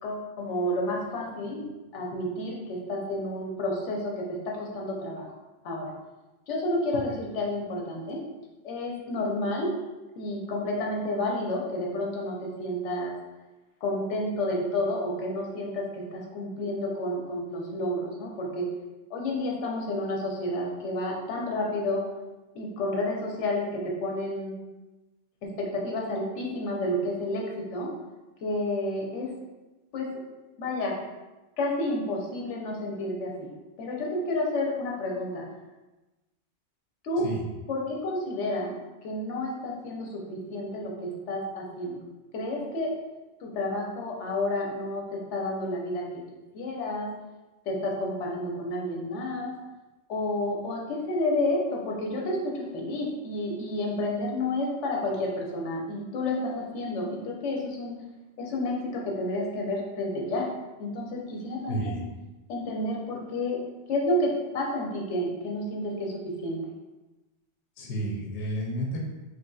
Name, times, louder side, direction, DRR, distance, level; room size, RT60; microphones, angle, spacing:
voice 1, 0.0-1.6 1.9-5.3 5.6-5.9 6.5-8.2 8.6-9.7 10.2-13.1 13.8-18.7 19.1-22.0 22.5-24.5 25.4-27.9 28.4-29.3 29.9-30.2 30.6-31.0 31.6-33.3 33.8-35.4 37.0-37.3 37.7-38.7 39.0-42.0 42.3-42.9 43.4-46.1 46.5-47.1 47.7-49.5 50.1-58.0 58.4-60.5 60.8-62.0 62.5-63.6 63.9-66.6, left 1 dB, 90° left, -1 dB, 1.0 m, -30 dB
voice 2, 61.7-62.0 67.8-69.1, right 1 dB, 65° left, -1 dB, 0.8 m, -31 dB
3.2 x 2.6 x 2.3 m, 1.1 s
omnidirectional pair, 1.2 m